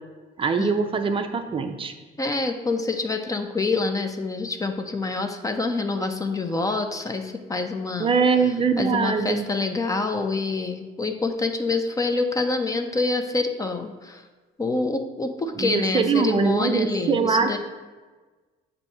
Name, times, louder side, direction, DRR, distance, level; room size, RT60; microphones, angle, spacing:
voice 1, 0.4-1.9 8.0-9.5 15.6-17.6, right 5 dB, 30° right, 6 dB, 0.5 m, -22 dB
voice 2, 2.2-8.1 8.8-14.2 14.6-17.6, left 3 dB, 20° left, 6 dB, 0.5 m, -26 dB
7.2 x 2.7 x 5.4 m, 1.3 s
cardioid pair, 110°, 17 cm